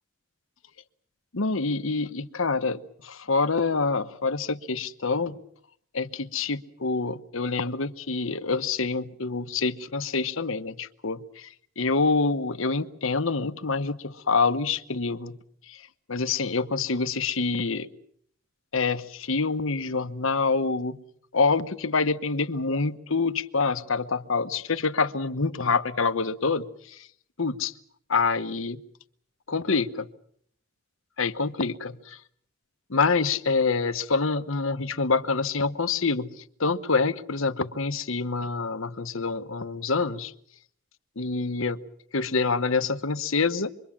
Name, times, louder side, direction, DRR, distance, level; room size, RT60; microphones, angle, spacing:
voice 1, 1.3-5.4 5.9-11.5 11.8-15.4 15.7-15.8 16.1-17.9 18.7-21.0 21.3-27.1 27.4-27.7 28.1-28.8 29.5-30.1 31.2-32.2 32.9-36.3 36.6-40.3 41.2-41.8 42.1-43.7, left 4 dB, 70° left, 10 dB, 1.2 m, -26 dB
27.0 x 23.0 x 7.4 m, 0.66 s
head